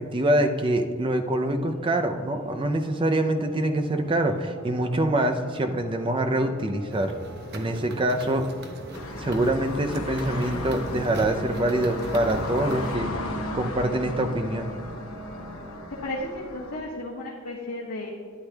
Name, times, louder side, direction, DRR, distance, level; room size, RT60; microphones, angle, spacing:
voice 1, 0.0-7.1 7.5-8.5 9.2-13.1 13.5-14.7, right 1 dB, 20° right, 6 dB, 0.5 m, -25 dB
sound 1, 1.6-15.8, equal, 10° left, 2.5 m, -41 dB
sound 2, 6.9-13.0, right 1 dB, 45° right, 0.8 m, -41 dB
sound 3, 8.9-16.8, left 2 dB, 70° left, 1.0 m, -36 dB
voice 2, 15.9-18.1, left 1 dB, 90° left, -5 dB, 1.3 m, -34 dB
12.0 x 9.7 x 2.3 m, 2.1 s
head